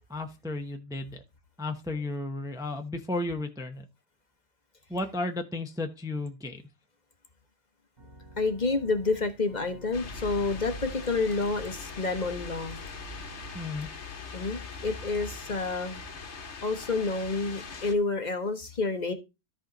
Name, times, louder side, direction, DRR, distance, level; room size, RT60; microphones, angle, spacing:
voice 1, 0.1-1.2 1.6-3.9 4.9-6.6 13.5-13.9, left 2 dB, 5° right, 0.7 m, -33 dB
Organ, 8.0-13.8, right 1 dB, 50° right, 6.4 m, -50 dB
voice 2, 8.4-12.8 14.3-16.0 16.6-19.1, left 3 dB, 40° left, 1.1 m, -29 dB
sound 1, 9.9-17.9, left 4 dB, 70° left, 1.4 m, -41 dB
13.5 x 4.9 x 3.9 m
omnidirectional pair, 1.2 m